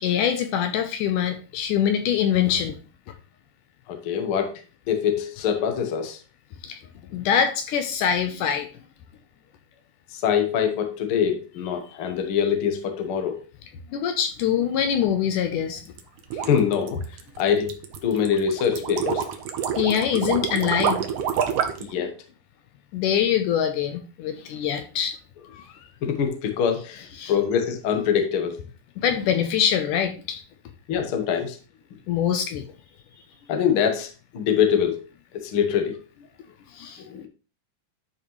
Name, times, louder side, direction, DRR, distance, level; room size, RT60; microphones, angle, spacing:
voice 1, 0.0-2.8 6.6-6.8 7.1-8.7 13.9-15.8 19.8-21.0 22.9-25.2 27.2-27.3 29.0-30.4 32.1-32.6 36.7-37.3, left 8 dB, 80° left, 7 dB, 2.1 m, -24 dB
voice 2, 3.9-4.6 4.9-6.2 10.1-13.4 16.3-17.0 17.4-17.7 18.0-19.2 21.8-22.1 25.7-28.6 30.9-31.6 33.5-35.0 35.3-36.0 37.1-37.3, left 8 dB, 55° left, 5 dB, 1.6 m, -24 dB
sound 1, 15.9-21.9, right 8 dB, 75° right, 1.5 m, -27 dB
11.5 x 5.2 x 3.2 m, 0.34 s
omnidirectional pair, 3.9 m